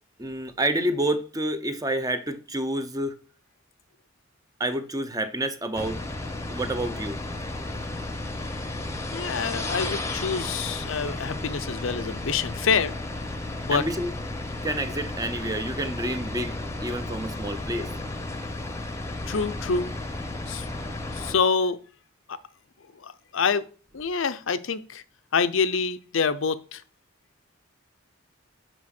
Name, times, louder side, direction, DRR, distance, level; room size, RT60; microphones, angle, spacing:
voice 1, 0.2-3.2 4.6-6.0 6.5-7.2 13.7-14.1 14.6-17.9, right 1 dB, 20° right, 0.6 m, -29 dB
sound 1, 5.7-21.3, left 2 dB, 15° left, 0.8 m, -33 dB
voice 2, 9.1-12.9 13.6-13.9 19.3-19.9 20.5-20.7 21.1-21.8 22.3-22.4 23.0-23.6 23.9-25.0 25.3-26.8, left 5 dB, 70° left, 0.6 m, -26 dB
6.2 x 5.1 x 5.9 m
head